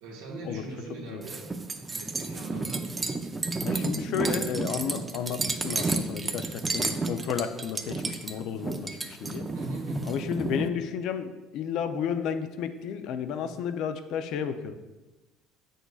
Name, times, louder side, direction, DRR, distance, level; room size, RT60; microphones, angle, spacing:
voice 1, 0.0-1.4 1.7-2.8 9.5-10.1, right 2 dB, 90° right, -2 dB, 1.4 m, -39 dB
sound 1, 1.2-10.7, right 3 dB, 20° right, 0.5 m, -31 dB
voice 2, 3.6-9.5 10.1-14.7, left 8 dB, 65° left, 9 dB, 0.5 m, -32 dB
8.0 x 6.3 x 2.4 m, 1.1 s
supercardioid pair, 100°, 0 cm